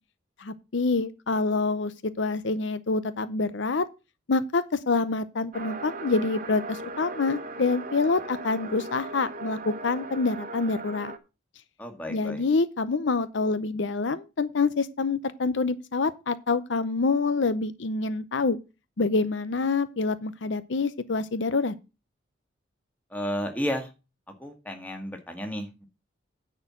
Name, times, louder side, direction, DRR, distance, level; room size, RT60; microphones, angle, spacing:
voice 1, 0.4-3.8 4.3-11.1 12.1-18.6 19.0-21.7, left 3 dB, 70° left, 0.6 m, -26 dB
sound 1, 5.5-11.2, right 2 dB, 45° right, 1.1 m, -38 dB
voice 2, 11.8-12.4 23.1-23.9 24.4-25.9, equal, 10° left, 1.8 m, -32 dB
10.0 x 4.4 x 7.4 m
head